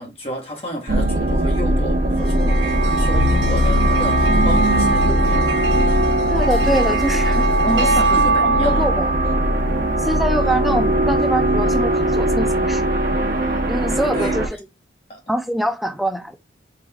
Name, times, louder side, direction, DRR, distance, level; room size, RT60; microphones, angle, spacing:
voice 1, 0.0-5.6 7.6-8.9 14.1-14.5 15.1-15.2, equal, 30° left, 1.3 m, -30 dB
sound 1, 0.9-14.5, right 1 dB, 50° right, 0.9 m, -20 dB
sound 2, 2.2-10.8, right 3 dB, 75° right, 0.9 m, -23 dB
sound 3, 3.1-10.2, left 4 dB, 70° left, 1.5 m, -28 dB
voice 2, 6.3-7.5 7.8-7.9 8.8-9.1 10.0-12.9 13.7-14.5 15.3-16.4, right 1 dB, ahead, 0.5 m, -24 dB
3.8 x 3.5 x 3.5 m
head